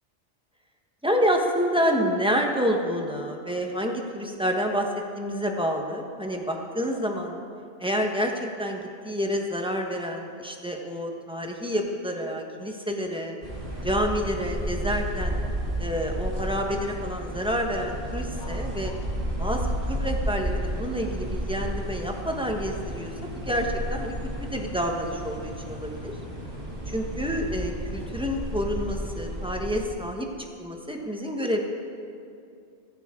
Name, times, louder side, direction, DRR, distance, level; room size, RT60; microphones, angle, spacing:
voice 1, 1.0-4.9 5.1-7.4 7.8-13.4 13.8-15.4 15.8-18.9 19.4-26.1 26.9-31.6, equal, 5° right, 1 dB, 1.1 m, -28 dB
sound 1, 13.4-29.9, equal, 45° right, 2.7 m, -32 dB
16.0 x 14.5 x 3.7 m, 2.5 s
omnidirectional pair, 1.2 m